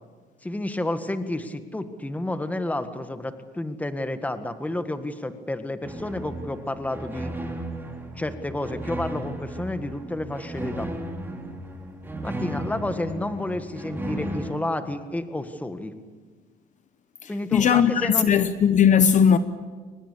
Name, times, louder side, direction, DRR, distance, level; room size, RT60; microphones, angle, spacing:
voice 1, 0.4-7.3 8.2-10.9 12.2-15.9 17.3-18.3, left 1 dB, 10° left, 1.7 m, -30 dB
sound 1, 5.8-14.6, right 1 dB, 10° right, 3.4 m, -35 dB
voice 2, 17.2-19.4, left 7 dB, 45° left, 1.0 m, -19 dB
24.0 x 20.0 x 8.5 m
cardioid pair, 110°, 17 cm